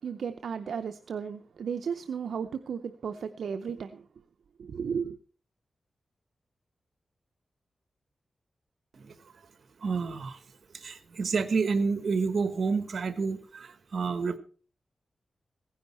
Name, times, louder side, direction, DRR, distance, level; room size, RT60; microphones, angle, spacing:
voice 1, 0.0-4.1 4.6-5.2, right 6 dB, 90° right, 9 dB, 0.6 m, -34 dB
voice 2, 9.8-10.4 10.7-14.4, right 4 dB, 75° right, 11 dB, 1.3 m, -29 dB
16.0 x 10.0 x 4.3 m, 0.41 s
cardioid pair, 65°, 0 cm